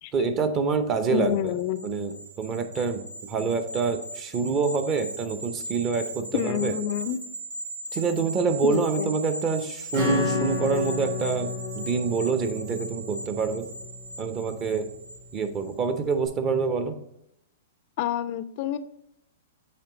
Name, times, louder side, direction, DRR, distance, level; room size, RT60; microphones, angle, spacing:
voice 1, 0.1-1.5 1.8-6.7 7.9-13.7 14.2-14.9 15.3-16.9, right 4 dB, 30° right, 9 dB, 0.7 m, -26 dB
voice 2, 1.1-1.8 6.3-7.2 8.6-9.1 18.0-18.8, left 11 dB, 50° left, 13 dB, 0.3 m, -28 dB
sound 1, 1.1-15.8 16.1-16.3, right 2 dB, 75° right, 1.5 m, -39 dB
Acoustic guitar / Strum, 9.9-14.2, left 2 dB, 55° right, 1.9 m, -31 dB
8.7 x 3.1 x 4.0 m, 0.78 s
hypercardioid pair, 115°, 0 cm